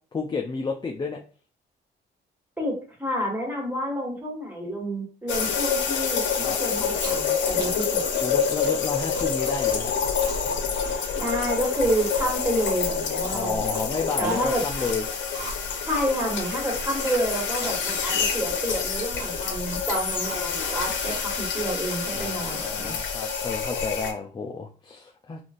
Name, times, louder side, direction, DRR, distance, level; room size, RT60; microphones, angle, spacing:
voice 1, 0.1-1.2 6.4-6.6 8.2-9.9 13.3-15.0 22.2-25.4, left 4 dB, 20° left, 0 dB, 0.4 m, -31 dB
voice 2, 2.6-8.0 11.1-13.8 14.2-14.6 15.8-23.0, right 1 dB, 10° right, -1 dB, 1.6 m, -29 dB
sound 1, 5.3-24.1, left 6 dB, 65° left, 0.7 m, -27 dB
Chewing mastication, 6.9-16.6 17.0-22.9, right 3 dB, 65° right, 1.1 m, -42 dB
3.8 x 2.5 x 2.5 m, 0.39 s
cardioid pair, 90°, 20 cm